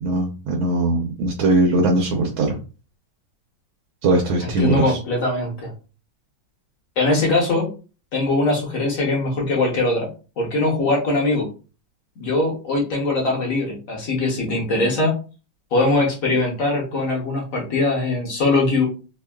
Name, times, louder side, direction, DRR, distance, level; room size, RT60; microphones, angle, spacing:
voice 1, 0.0-2.5 4.0-5.0, right 2 dB, 90° right, 0 dB, 1.5 m, -20 dB
voice 2, 4.4-5.7 7.0-7.7 8.1-10.1 10.4-11.5 12.2-15.1 15.7-18.9, left 2 dB, 55° left, -1 dB, 1.0 m, -21 dB
3.4 x 2.2 x 2.2 m, 0.34 s
omnidirectional pair, 2.1 m